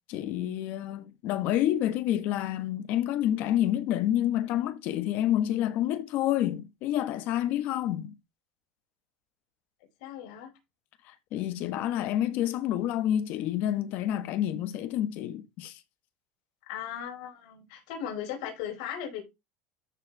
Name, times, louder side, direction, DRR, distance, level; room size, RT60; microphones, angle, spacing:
voice 1, 0.1-8.1 11.0-15.8, left 12 dB, 50° left, 1.5 m, -28 dB
voice 2, 10.0-10.5 16.7-19.2, left 9 dB, 65° left, 4.4 m, -37 dB
13.5 x 4.6 x 3.5 m
supercardioid pair, 150°, 4 cm